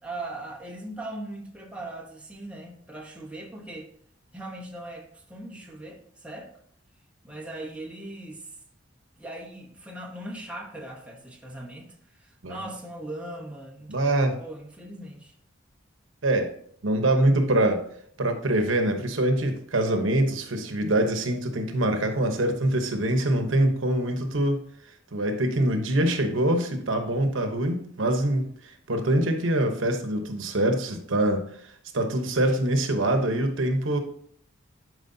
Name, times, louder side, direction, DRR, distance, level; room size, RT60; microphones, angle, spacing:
voice 1, 0.0-3.9 4.3-6.6 7.2-8.5 9.2-14.0 14.4-15.3, right 1 dB, 5° right, -1 dB, 1.0 m, -39 dB
voice 2, 13.9-14.4 16.2-16.5 16.8-17.8 18.2-24.6 25.1-31.4 31.9-34.0, right 1 dB, 70° right, 6 dB, 1.0 m, -24 dB
11.5 x 4.8 x 2.7 m, 0.64 s
head